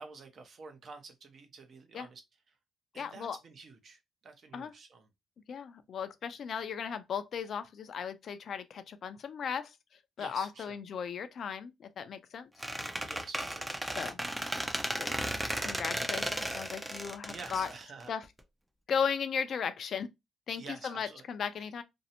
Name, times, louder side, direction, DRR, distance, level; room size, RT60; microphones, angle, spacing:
voice 1, 0.0-2.2 2.9-5.1 10.2-10.7 13.0-14.0 17.3-18.1 20.6-21.2, right 4 dB, 55° right, 0.6 m, -49 dB
voice 2, 3.0-3.4 4.5-4.7 5.5-9.7 10.2-12.5 13.9-14.2 15.0-15.1 15.5-17.7 18.1-18.2 18.9-20.1 20.5-21.8, left 7 dB, 60° left, 0.4 m, -36 dB
Squeak, 12.6-18.4, right 1 dB, 10° right, 0.4 m, -35 dB
2.6 x 2.0 x 2.8 m
cardioid pair, 90°, 0 cm